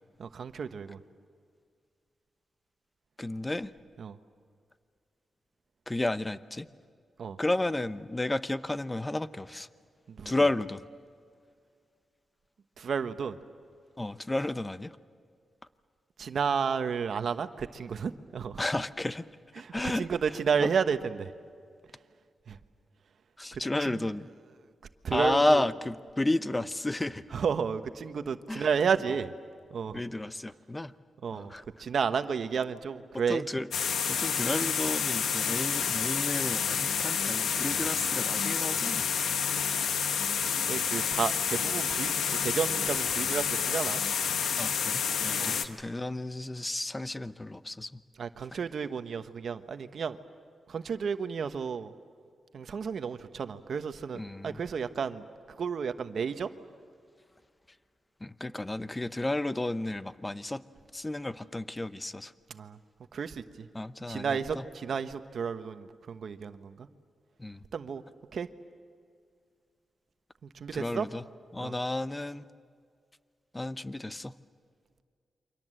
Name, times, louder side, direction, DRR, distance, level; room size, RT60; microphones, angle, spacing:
voice 1, 0.2-1.0 4.0-4.2 7.2-7.4 10.1-10.3 12.8-13.4 16.2-18.6 19.6-21.3 22.5-22.6 23.5-24.0 25.0-25.6 27.3-29.3 29.7-30.0 31.2-31.5 31.8-33.4 40.7-44.0 45.4-45.6 48.2-50.2 50.7-51.9 52.5-56.5 62.5-62.8 63.1-63.7 64.1-66.9 67.7-68.0 68.3-68.5 70.5-71.1 71.6-71.7, right 6 dB, 65° right, 9 dB, 1.2 m, -32 dB
voice 2, 3.2-3.7 5.9-6.7 7.4-9.7 10.2-10.8 14.0-15.0 18.6-19.3 19.7-20.1 20.6-20.7 23.4-24.3 25.1-27.2 28.5-28.7 29.9-30.9 31.3-31.6 33.3-33.7 34.1-39.1 44.6-48.0 48.5-48.6 54.1-54.6 58.2-60.6 60.9-62.3 63.7-64.6 67.4-67.6 70.7-71.2 71.5-72.4 73.5-74.3, left 2 dB, 15° left, 14 dB, 0.8 m, -32 dB
sound 1, 33.7-45.6, left 7 dB, 90° left, 1.3 m, -29 dB
29.0 x 24.5 x 7.7 m, 2.2 s
cardioid pair, 85°, 0 cm